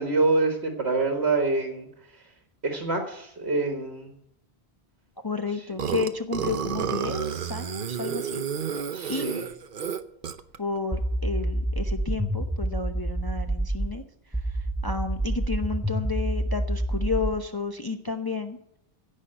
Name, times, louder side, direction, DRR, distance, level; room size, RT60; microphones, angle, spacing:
voice 1, 0.0-1.9 2.6-4.1 5.5-5.6 8.9-9.5, right 3 dB, 75° right, 3 dB, 1.8 m, -26 dB
voice 2, 5.2-8.4 9.1-9.3 10.6-14.0 14.8-18.6, left 4 dB, 25° left, 5 dB, 0.7 m, -31 dB
Burping eructation, 5.8-10.6, right 7 dB, 55° right, 0.9 m, -30 dB
sound 1, 10.9-13.9 14.3-17.4, right 1 dB, 5° right, 0.4 m, -27 dB
16.0 x 5.5 x 8.7 m, 0.76 s
omnidirectional pair, 1.1 m